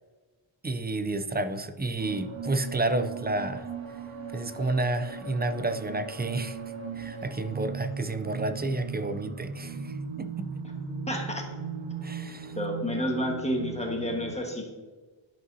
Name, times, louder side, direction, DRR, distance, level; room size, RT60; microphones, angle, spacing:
voice 1, 0.6-3.7 4.3-6.6 7.0-10.5 12.0-12.5, right 2 dB, 20° right, 10 dB, 0.4 m, -30 dB
sound 1, 2.0-14.3, right 5 dB, 75° right, 1.1 m, -38 dB
voice 2, 11.1-11.4 12.5-14.7, equal, 15° left, 0 dB, 1.4 m, -30 dB
12.0 x 5.4 x 2.7 m, 1.4 s
wide cardioid pair, 110°, 48 cm